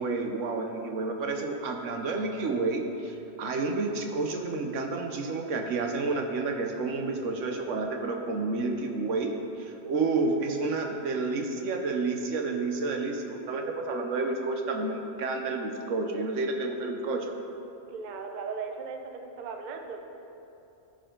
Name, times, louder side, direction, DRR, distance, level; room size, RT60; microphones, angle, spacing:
voice 1, 0.0-9.3 9.6-17.3, right 3 dB, 75° right, 3 dB, 1.2 m, -30 dB
voice 2, 17.9-20.0, right 5 dB, 50° right, 4 dB, 0.6 m, -37 dB
13.5 x 5.0 x 3.8 m, 2.9 s
omnidirectional pair, 1.3 m